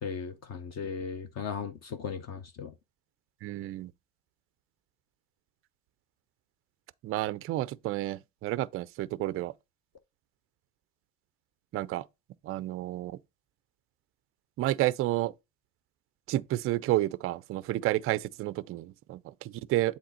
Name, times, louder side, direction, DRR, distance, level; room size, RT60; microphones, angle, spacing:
voice 1, 0.0-2.7, left 6 dB, 35° left, 0.8 m, -37 dB
voice 2, 3.4-3.9 7.0-9.5 11.7-12.1 12.4-13.2 14.6-15.3 16.3-20.0, right 15 dB, 35° right, 0.4 m, -30 dB
7.8 x 3.5 x 4.2 m
supercardioid pair, 90°, 43 cm